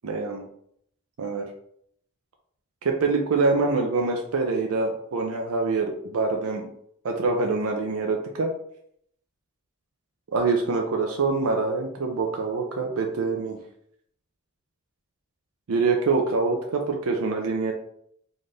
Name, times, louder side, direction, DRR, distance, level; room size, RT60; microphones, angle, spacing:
voice 1, 0.0-0.4 1.2-1.5 2.8-6.6 7.0-8.5 10.3-13.6 15.7-17.7, right 4 dB, 80° right, 2 dB, 0.5 m, -25 dB
4.1 x 2.4 x 3.3 m, 0.70 s
head